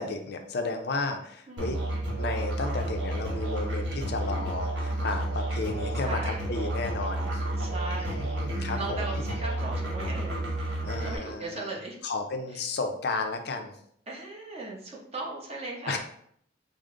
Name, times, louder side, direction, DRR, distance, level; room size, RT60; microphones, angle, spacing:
voice 1, 0.0-1.8 2.2-7.4 8.0-9.3 10.8-11.8 12.0-13.7 15.9-16.0, left 3 dB, 55° left, 5 dB, 0.4 m, -33 dB
voice 2, 1.5-1.8 4.1-4.5 6.0-6.5 7.6-8.3 8.8-10.5 11.0-12.0 14.1-16.0, right 2 dB, 30° right, -2 dB, 0.8 m, -38 dB
Musical instrument, 1.6-11.2, right 1 dB, 60° right, 1.3 m, -31 dB
4.9 x 2.0 x 3.6 m, 0.66 s
head